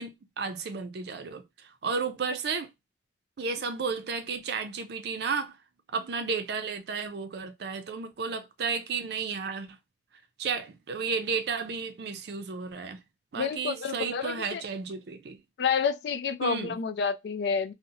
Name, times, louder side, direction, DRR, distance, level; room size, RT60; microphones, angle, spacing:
voice 1, 0.0-1.4 1.8-2.7 3.4-5.6 5.9-9.7 10.4-13.0 13.3-15.4 16.4-16.8, right 5 dB, 65° right, 0.5 m, -33 dB
voice 2, 13.4-14.6 15.6-17.7, left 6 dB, 65° left, 0.4 m, -29 dB
2.7 x 2.1 x 2.6 m
head